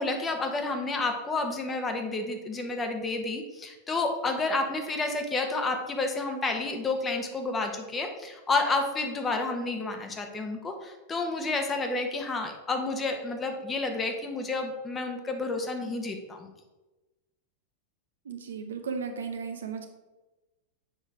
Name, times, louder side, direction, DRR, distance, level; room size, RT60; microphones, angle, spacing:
voice 1, 0.0-16.5, left 3 dB, 20° left, 4 dB, 1.2 m, -30 dB
voice 2, 18.2-19.9, right 5 dB, 65° right, 5 dB, 0.9 m, -35 dB
7.3 x 5.7 x 4.7 m, 1.1 s
figure-of-eight pair, 90°, 0 cm